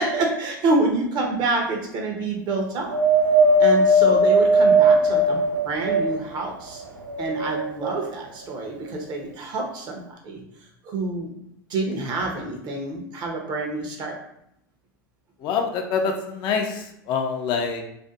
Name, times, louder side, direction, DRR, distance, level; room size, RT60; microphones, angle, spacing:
voice 1, 0.0-3.0 3.6-6.8 7.2-10.4 10.8-11.3 11.7-14.2, right 2 dB, 40° right, 1 dB, 0.7 m, -27 dB
Wind, 2.9-6.4 7.0-8.0 8.8-8.9, right 1 dB, 80° right, 0.4 m, -18 dB
voice 2, 15.4-17.8, left 5 dB, 45° left, 4 dB, 0.4 m, -25 dB
2.5 x 2.4 x 2.4 m, 0.77 s
hypercardioid pair, 85°, 11 cm